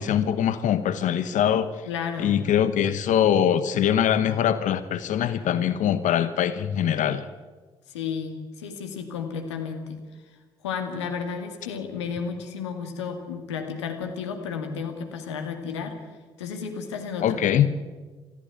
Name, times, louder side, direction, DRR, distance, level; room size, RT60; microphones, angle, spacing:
voice 1, 0.0-1.9 2.2-7.3 17.2-17.7, left 9 dB, 60° left, 13 dB, 1.1 m, -23 dB
voice 2, 1.9-2.4 7.9-10.0 10.6-16.0 16.4-17.6, left 6 dB, 85° left, 5 dB, 2.1 m, -32 dB
19.5 x 15.0 x 9.3 m, 1.3 s
hypercardioid pair, 45°, 14 cm